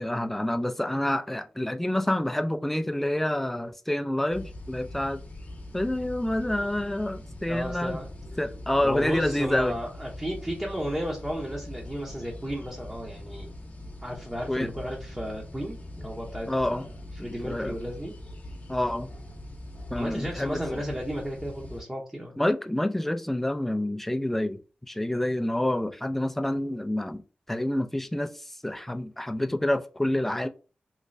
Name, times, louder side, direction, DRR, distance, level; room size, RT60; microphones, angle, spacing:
voice 1, 0.0-5.2 5.7-8.0 8.4-9.8 14.5-14.7 16.5-16.8 17.2-17.7 18.7-19.1 19.9-20.8 22.4-24.6 24.9-27.2 27.5-30.5, left 1 dB, 5° left, 0.4 m, -28 dB
sound 1, 4.3-21.8, left 1 dB, 50° left, 0.9 m, -42 dB
voice 2, 7.5-8.1 8.8-13.5 14.0-16.8 17.2-18.1 19.9-22.3, equal, 15° right, 0.7 m, -34 dB
3.2 x 3.2 x 2.6 m
wide cardioid pair, 105°, 3 cm